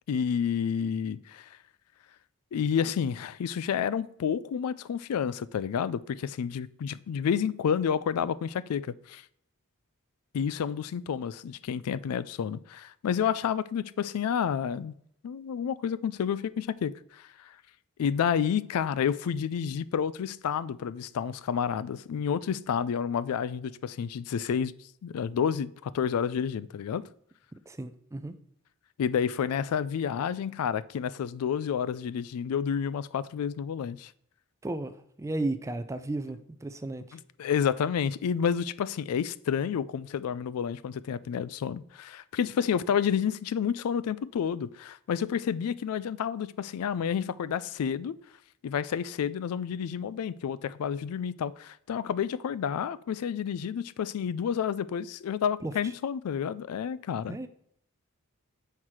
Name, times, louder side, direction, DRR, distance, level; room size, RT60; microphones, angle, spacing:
voice 1, 0.1-1.6 2.5-9.2 10.3-14.9 15.2-17.5 18.0-24.7 25.0-27.0 29.0-34.1 37.1-48.1 48.6-57.4, left 7 dB, 80° left, 0.3 m, -30 dB
voice 2, 27.7-28.4 34.6-37.2 55.6-55.7 57.3-57.5, right 2 dB, 15° right, 0.4 m, -34 dB
6.3 x 5.7 x 4.6 m
head